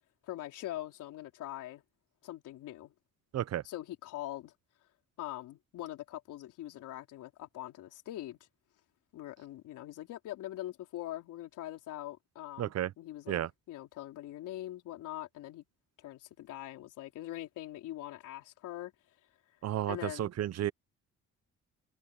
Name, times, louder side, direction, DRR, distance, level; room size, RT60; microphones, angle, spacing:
voice 1, 0.2-1.8 2.2-2.9 3.6-4.5 5.2-8.4 9.1-15.7 16.0-18.9 19.9-20.3, left 14 dB, 90° left, 4.1 m, -43 dB
voice 2, 12.6-12.9 13.3-13.5 19.6-20.7, right 12 dB, 60° right, 0.8 m, -32 dB
cardioid pair, 90°, 30 cm